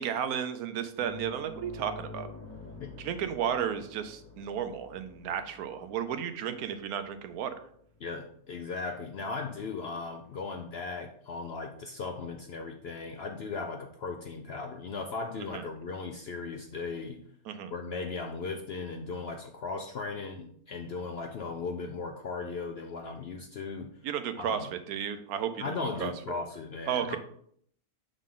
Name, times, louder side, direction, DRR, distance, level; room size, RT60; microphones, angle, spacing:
voice 1, 0.0-2.3 3.0-7.5 15.4-15.6 17.5-17.7 24.0-26.1 26.9-27.2, right 8 dB, 85° right, 9 dB, 1.1 m, -33 dB
sound 1, 1.0-9.9 10.2-10.4 12.5-12.6, left 3 dB, 35° left, 1.4 m, -49 dB
voice 2, 8.0-17.2 17.7-24.0 24.4-24.6 25.6-27.2, left 4 dB, 65° left, 5 dB, 0.6 m, -37 dB
7.3 x 3.8 x 3.7 m, 0.65 s
omnidirectional pair, 1.6 m